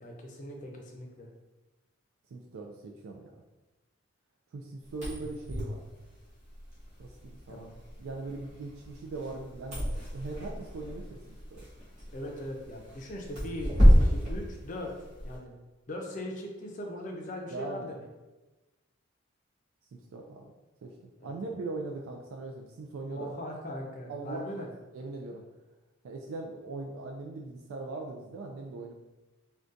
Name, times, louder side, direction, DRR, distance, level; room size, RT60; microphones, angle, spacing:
voice 1, 0.0-1.3 7.5-7.6 12.1-14.9 15.2-15.5 15.9-18.0 21.2-21.4 23.1-24.7, left 1 dB, 35° left, 1 dB, 0.5 m, -40 dB
voice 2, 2.3-3.4 4.5-5.8 7.0-7.7 8.0-9.9 10.1-11.7 17.5-17.9 19.9-20.5 20.8-20.9 21.2-23.3 24.1-24.5 24.9-25.4 26.0-28.9, right 3 dB, 80° right, 1 dB, 0.3 m, -40 dB
sound 1, 4.9-15.4, equal, 35° right, 1.3 m, -29 dB
3.7 x 2.3 x 2.5 m, 1.1 s
head